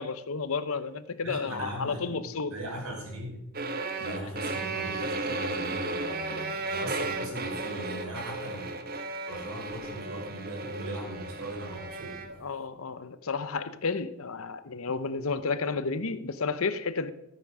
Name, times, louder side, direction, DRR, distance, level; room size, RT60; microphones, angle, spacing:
voice 1, 0.0-2.5 6.3-6.6 12.4-17.1, left 4 dB, 80° left, 0.8 m, -32 dB
voice 2, 1.2-2.2 2.5-3.4 4.0-8.7 9.3-12.4, right 1 dB, 80° right, 5.7 m, -39 dB
sound 1, 3.5-12.4, right 3 dB, 45° right, 1.2 m, -34 dB
13.5 x 9.1 x 6.2 m
head